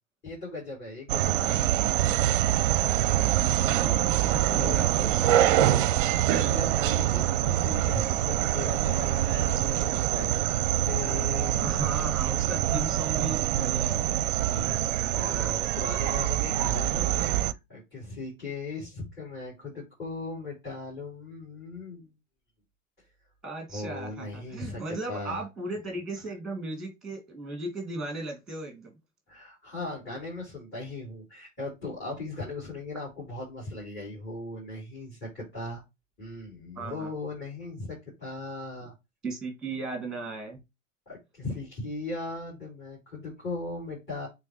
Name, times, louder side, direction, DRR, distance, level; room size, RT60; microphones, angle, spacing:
voice 1, 0.2-1.7 4.4-5.2 5.5-10.3 10.8-12.2 14.4-14.8 15.1-22.1 23.7-25.4 29.3-35.8 36.2-38.9 41.1-44.3, left 2 dB, 25° left, 4.6 m, -38 dB
sound 1, 1.1-17.5, right 12 dB, 45° right, 0.6 m, -25 dB
voice 2, 3.7-5.7 11.6-14.1 23.4-28.9 36.8-37.1 39.2-40.6, right 2 dB, ahead, 2.4 m, -36 dB
8.2 x 3.6 x 3.1 m
figure-of-eight pair, 95°, 38 cm